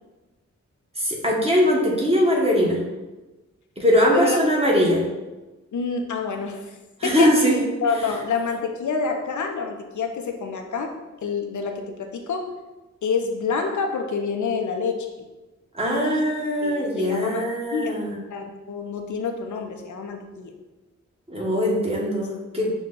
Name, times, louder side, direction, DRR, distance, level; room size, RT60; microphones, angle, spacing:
voice 1, 1.0-2.8 3.8-5.0 7.0-7.6 15.7-18.2 21.3-22.7, equal, 20° right, -3 dB, 1.1 m, -21 dB
voice 2, 5.7-6.8 7.0-7.5 7.8-12.5 13.0-15.1 15.8-16.3 16.6-18.0 18.3-20.5, left 5 dB, 75° left, 4 dB, 0.5 m, -27 dB
6.1 x 2.2 x 3.7 m, 1.1 s
wide cardioid pair, 95°, 29 cm